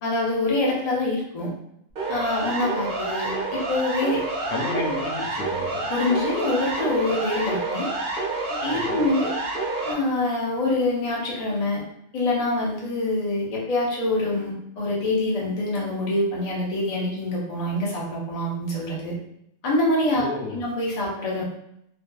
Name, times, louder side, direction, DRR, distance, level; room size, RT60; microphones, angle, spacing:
voice 1, 0.0-1.5 2.1-4.2 5.9-7.9 8.5-9.3 9.8-11.8 12.1-19.2 19.6-20.3 20.5-21.4, left 2 dB, 45° left, -4 dB, 0.5 m, -25 dB
Siren, 2.0-9.9, right 2 dB, 60° right, 0.5 m, -28 dB
voice 2, 4.5-5.8 8.7-9.1 20.2-20.6, left 3 dB, 90° left, 1 dB, 1.1 m, -32 dB
2.6 x 2.2 x 2.2 m, 0.76 s
omnidirectional pair, 1.5 m